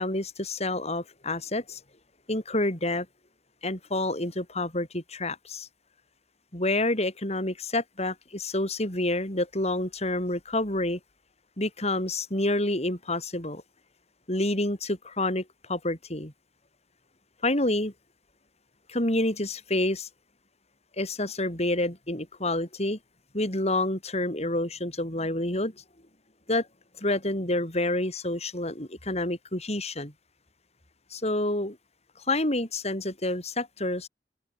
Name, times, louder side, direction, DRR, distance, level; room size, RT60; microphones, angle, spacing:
voice 1, 0.0-1.8 2.3-3.1 3.6-5.7 6.5-11.0 11.6-13.6 14.3-16.3 17.4-17.9 18.9-20.1 21.0-23.0 23.3-25.7 26.5-26.7 27.0-30.1 31.1-31.8 32.3-34.1, left 1 dB, 35° left, 7.1 m, -28 dB
head